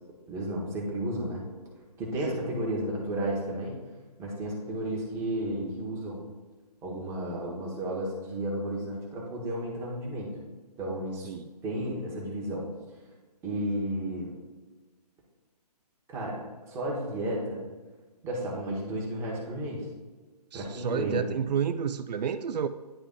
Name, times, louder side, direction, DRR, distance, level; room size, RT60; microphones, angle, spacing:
voice 1, 0.3-1.4 2.0-3.8 4.2-6.2 6.8-10.3 10.8-11.3 11.6-12.7 13.4-14.3 16.1-17.6 18.2-19.9 20.5-21.2, right 1 dB, 15° right, -3 dB, 1.2 m, -32 dB
voice 2, 20.5-22.7, right 7 dB, 80° right, 11 dB, 0.4 m, -30 dB
9.9 x 3.4 x 3.7 m, 1.3 s
hypercardioid pair, 150°, 21 cm